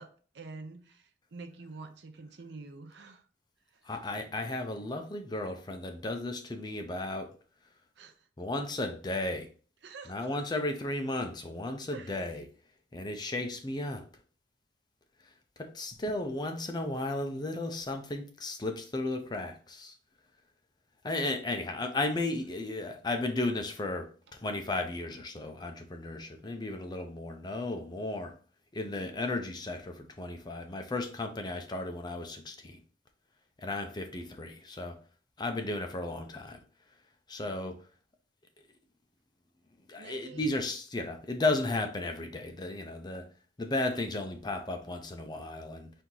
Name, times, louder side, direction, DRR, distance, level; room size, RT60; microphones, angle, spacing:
voice 1, 0.0-3.3 3.7-3.8 8.0-8.3 9.8-10.4 11.9-12.3 40.0-40.6, right 3 dB, 65° right, 0.6 m, -47 dB
voice 2, 3.8-7.3 8.4-9.5 10.1-12.4 12.9-14.0 15.6-19.9 21.0-28.4 28.7-32.8 33.6-35.0 35.4-36.6 37.3-37.8 39.9-43.3 43.6-45.9, left 2 dB, 25° left, 0.5 m, -34 dB
4.5 x 2.7 x 3.7 m
head